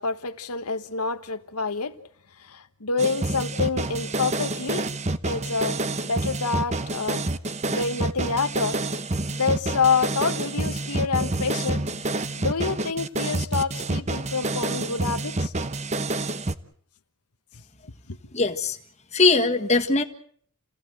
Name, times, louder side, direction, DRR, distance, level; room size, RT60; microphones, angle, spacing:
voice 1, 0.0-2.0 2.4-4.9 5.2-7.2 7.7-8.8 9.3-11.8 12.2-15.5 18.1-18.2, left 4 dB, 90° left, 1.5 m, -27 dB
sound 1, 3.0-16.5, right 2 dB, 30° right, 0.9 m, -28 dB
voice 2, 18.3-18.8 19.1-20.0, left 3 dB, 30° left, 1.7 m, -20 dB
29.5 x 17.0 x 7.9 m
head